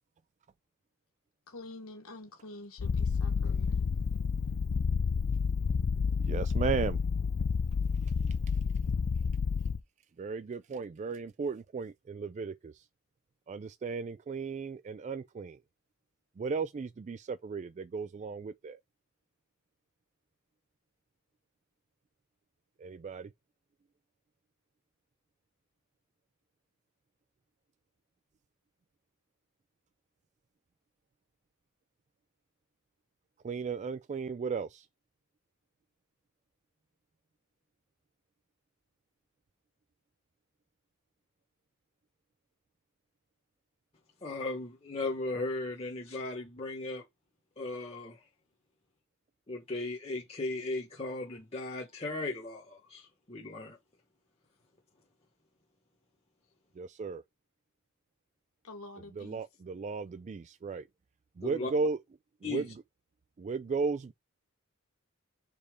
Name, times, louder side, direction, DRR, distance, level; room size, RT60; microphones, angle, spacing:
voice 1, 1.5-3.9 58.6-59.4, left 2 dB, 85° left, 1.7 m, -47 dB
Purr, 2.8-9.8, left 5 dB, 50° left, 0.4 m, -30 dB
voice 2, 6.2-7.0 8.0-8.6 10.2-12.9 13.5-15.6 16.4-18.8 22.8-23.3 33.4-34.9 56.8-57.2 59.1-60.9 61.4-62.0 62.4-62.7 63.4-64.1, right 5 dB, 35° right, 0.3 m, -35 dB
voice 3, 44.2-47.0 47.6-48.2 49.5-53.8 61.4-61.7 62.4-62.6, left 2 dB, 30° left, 1.2 m, -37 dB
5.2 x 4.2 x 5.0 m
head